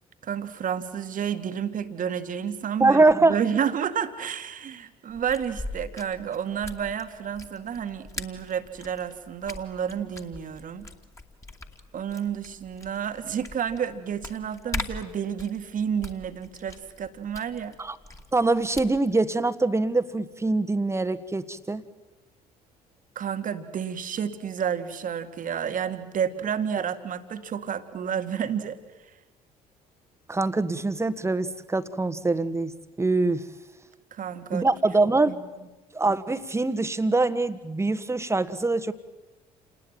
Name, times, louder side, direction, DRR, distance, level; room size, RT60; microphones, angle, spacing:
voice 1, 0.2-10.9 11.9-17.8 23.2-28.8 34.1-34.7 35.3-35.4, right 8 dB, 40° right, 9 dB, 2.0 m, -30 dB
voice 2, 2.8-3.4 17.8-17.9 18.3-21.8 30.3-33.5 34.5-35.4 35.9-38.9, right 3 dB, 15° right, 11 dB, 1.5 m, -24 dB
sound 1, 5.1-19.2, left 2 dB, 15° left, 2.5 m, -41 dB
28.5 x 20.0 x 9.1 m, 1.1 s
figure-of-eight pair, 50°, 20 cm